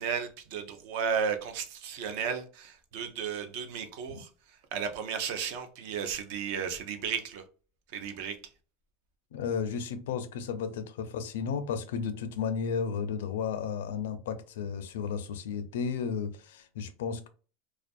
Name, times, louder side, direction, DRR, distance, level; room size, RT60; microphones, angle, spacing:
voice 1, 0.0-4.3 4.7-7.4 7.9-8.4, right 7 dB, 60° right, 0.5 m, -34 dB
voice 2, 9.3-17.3, left 6 dB, 85° left, 0.4 m, -33 dB
2.4 x 2.3 x 2.5 m
supercardioid pair, 155°, 0 cm